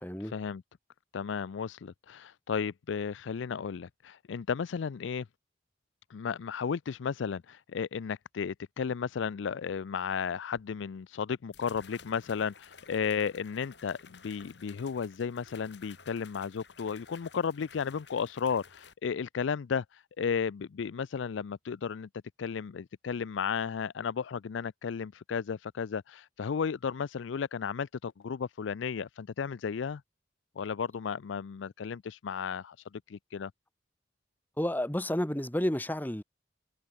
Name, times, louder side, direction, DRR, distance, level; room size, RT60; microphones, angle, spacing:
voice 1, 0.0-0.3 34.6-36.2, left 1 dB, 10° left, 1.1 m, -31 dB
voice 2, 1.1-5.3 6.1-19.8 20.2-22.1 22.4-30.0 30.6-32.8 33.1-33.5, left 6 dB, 85° left, 0.4 m, -34 dB
sound 1, 11.5-18.9, left 5 dB, 70° left, 3.9 m, -54 dB
head